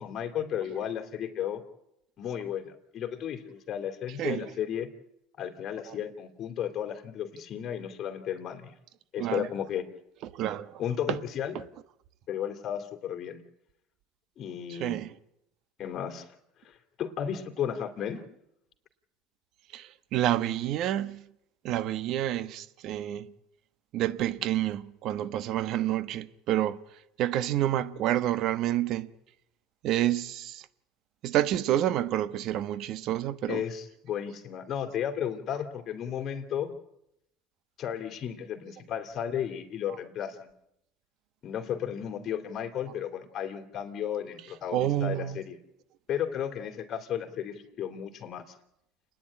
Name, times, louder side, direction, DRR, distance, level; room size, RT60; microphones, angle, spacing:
voice 1, 0.0-1.6 2.2-4.9 5.4-8.7 9.1-9.8 10.8-11.6 12.3-13.4 14.4-15.0 15.8-16.2 16.6-18.2 33.5-36.7 37.8-40.5 41.4-45.6 46.1-48.4, left 9 dB, 45° left, 3.1 m, -34 dB
voice 2, 10.3-10.8 11.1-11.2 14.8-15.1 19.7-21.2 21.6-23.3 23.9-26.8 27.2-29.1 29.8-30.6 31.2-33.6 44.7-45.4, right 12 dB, 60° right, 1.2 m, -28 dB
28.5 x 10.0 x 10.0 m
supercardioid pair, 105°, 0 cm